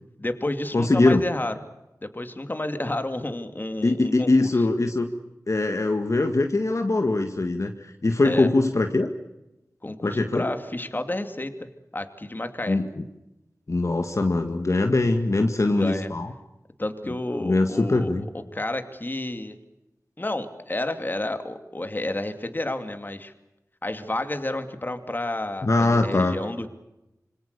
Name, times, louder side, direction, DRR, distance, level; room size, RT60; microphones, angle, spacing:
voice 1, 0.2-1.5 2.0-4.5 8.2-8.5 9.8-11.7 11.9-12.8 15.8-16.1 16.8-18.1 18.5-19.6 20.2-23.3 23.8-26.7, left 1 dB, 30° left, 8 dB, 2.6 m, -30 dB
voice 2, 0.7-1.2 3.8-5.1 5.5-9.1 10.0-10.5 12.7-13.0 13.7-16.3 17.4-18.3 25.6-26.4, left 2 dB, 50° left, 5 dB, 1.9 m, -22 dB
27.0 x 25.0 x 6.8 m, 0.93 s
wide cardioid pair, 75°, 6 cm